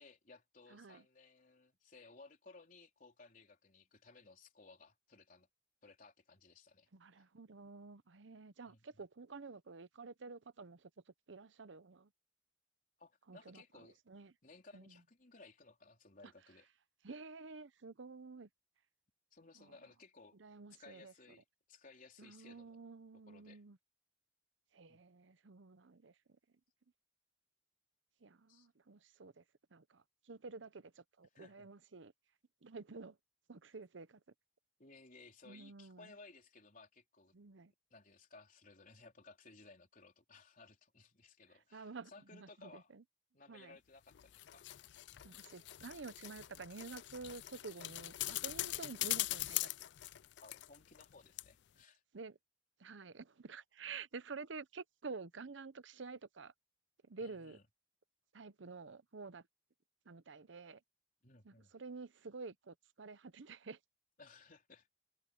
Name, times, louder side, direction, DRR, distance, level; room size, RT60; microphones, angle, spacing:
voice 1, 0.0-5.5 5.8-6.9 8.6-8.8 13.0-14.0 14.4-16.7 19.3-20.4 20.8-22.8 23.3-23.6 24.9-25.0 28.5-28.7 31.3-31.7 34.8-37.3 37.9-42.9 43.3-44.7 50.4-52.0 57.2-57.7 61.2-61.7 64.2-64.9, left 3 dB, 45° left, 3.9 m, -60 dB
voice 2, 0.7-1.0 6.9-10.9 11.3-12.1 13.3-14.3 14.7-15.0 16.2-16.3 17.0-18.5 19.6-19.8 20.4-21.1 22.2-23.8 24.7-26.1 28.2-29.4 29.7-32.1 32.6-33.2 33.5-34.2 35.4-36.2 37.3-37.7 41.7-43.0 43.5-43.8 45.2-49.7 52.1-52.4 52.8-56.5 57.1-57.6 58.3-59.4 60.1-60.8 61.4-63.8, right 4 dB, 80° right, 0.8 m, -50 dB
sound 1, 44.1-51.1 51.4-51.5, left 17 dB, 65° left, 0.4 m, -42 dB
head